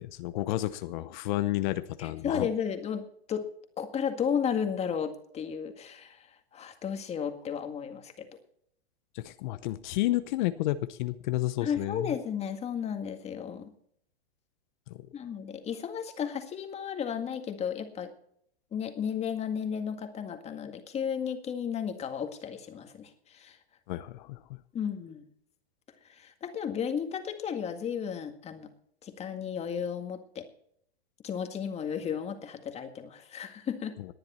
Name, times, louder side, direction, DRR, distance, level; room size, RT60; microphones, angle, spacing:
voice 1, 0.0-2.5 9.1-12.1 14.9-15.0 23.9-24.4 34.0-34.1, left 16 dB, 50° left, 12 dB, 0.9 m, -31 dB
voice 2, 2.0-3.5 3.8-6.3 6.5-8.3 11.6-13.7 15.1-18.1 18.7-23.6 24.7-25.2 26.1-28.7 29.0-30.5 31.2-34.0, left 7 dB, 20° left, 6 dB, 1.9 m, -34 dB
19.0 x 10.5 x 4.3 m, 0.66 s
hypercardioid pair, 135°, 31 cm